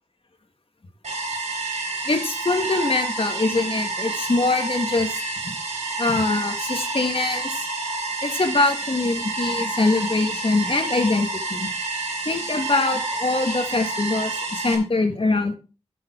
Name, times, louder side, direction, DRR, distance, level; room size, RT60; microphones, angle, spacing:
sound 1, 1.0-14.7, right 3 dB, 85° right, 3.6 m, -29 dB
voice 1, 2.1-5.1 5.4-5.5 6.0-7.6 8.2-11.7 12.3-15.5, left 3 dB, 55° left, 5 dB, 2.2 m, -23 dB
11.5 x 7.1 x 4.7 m, 0.33 s
wide cardioid pair, 65°, 11 cm